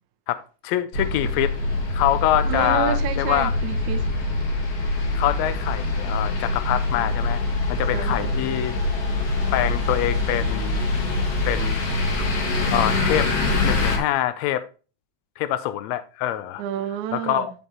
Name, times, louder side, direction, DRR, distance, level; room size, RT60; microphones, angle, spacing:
voice 1, 0.3-1.5 1.9-3.5 5.1-7.4 7.7-8.8 9.5-10.8 11.5-11.8 12.2-12.4 12.7-13.3 13.6-14.7 15.4-16.6 17.1-17.5, left 13 dB, 80° left, 1.7 m, -25 dB
sound 1, 0.9-14.0, left 2 dB, 60° left, 2.3 m, -24 dB
voice 2, 2.4-4.1 7.9-8.3 16.6-17.5, right 10 dB, 80° right, 2.1 m, -29 dB
10.0 x 5.4 x 2.9 m
omnidirectional pair, 3.4 m